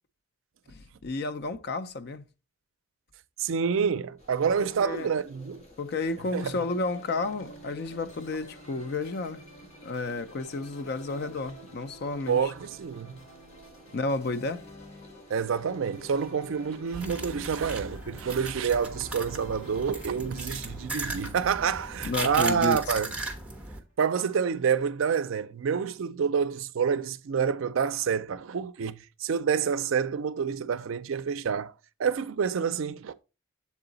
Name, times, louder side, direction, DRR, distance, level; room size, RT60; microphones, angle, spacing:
voice 1, 0.7-2.2 4.6-5.1 5.8-9.4 9.8-12.5 13.9-14.6 22.0-23.0, left 3 dB, 50° left, 0.4 m, -32 dB
voice 2, 3.4-5.6 6.3-6.5 12.3-13.2 15.3-23.1 24.0-31.7 32.0-33.1, right 6 dB, 70° right, 0.4 m, -28 dB
sound 1, 4.2-17.7, left 1 dB, 30° left, 1.7 m, -54 dB
sound 2, 6.2-23.6, equal, 80° left, 1.4 m, -51 dB
sound 3, 16.9-23.8, right 2 dB, 5° right, 0.8 m, -37 dB
7.2 x 3.9 x 3.9 m
head